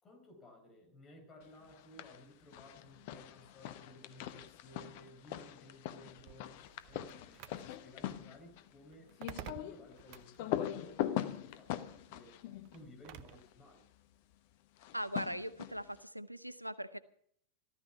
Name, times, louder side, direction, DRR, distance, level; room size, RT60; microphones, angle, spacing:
voice 1, 0.0-6.5 6.9-12.4 12.7-13.8, left 1 dB, 25° left, 2 dB, 4.6 m, -57 dB
sound 1, 1.7-2.2 2.5-13.5 14.8-16.0, left 12 dB, 50° left, 0.9 m, -42 dB
sound 2, 6.2-13.5, right 13 dB, 45° right, 0.7 m, -53 dB
voice 2, 14.9-17.0, equal, 90° right, 16 dB, 0.7 m, -40 dB
14.5 x 14.0 x 5.7 m, 0.64 s
figure-of-eight pair, 90°, 0 cm